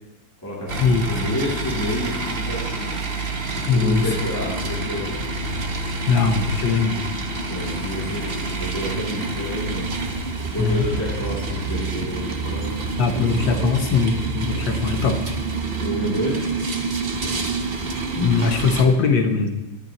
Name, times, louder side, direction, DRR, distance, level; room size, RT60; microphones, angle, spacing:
voice 1, 0.4-3.2 3.5-5.2 7.5-10.1 10.5-12.8 13.1-13.7 15.8-16.5, equal, 10° left, -6 dB, 2.7 m, -29 dB
sound 1, 0.7-18.9, right 3 dB, 40° right, 1.0 m, -27 dB
voice 2, 3.7-4.0 6.1-7.0 10.6-10.9 13.0-15.4 18.2-19.5, left 5 dB, 70° left, 5 dB, 1.8 m, -20 dB
19.0 x 12.0 x 3.0 m, 1.0 s
omnidirectional pair, 2.1 m